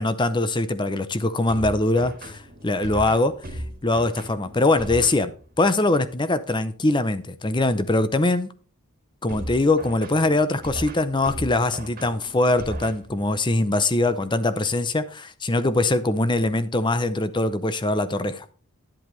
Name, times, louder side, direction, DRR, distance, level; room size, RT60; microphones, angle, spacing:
voice 1, 0.0-5.3 5.6-8.5 9.2-18.5, left 2 dB, 20° left, 0.6 m, -22 dB
sound 1, 1.5-5.7 9.3-13.5, equal, 40° right, 1.8 m, -37 dB
11.0 x 7.7 x 3.2 m
head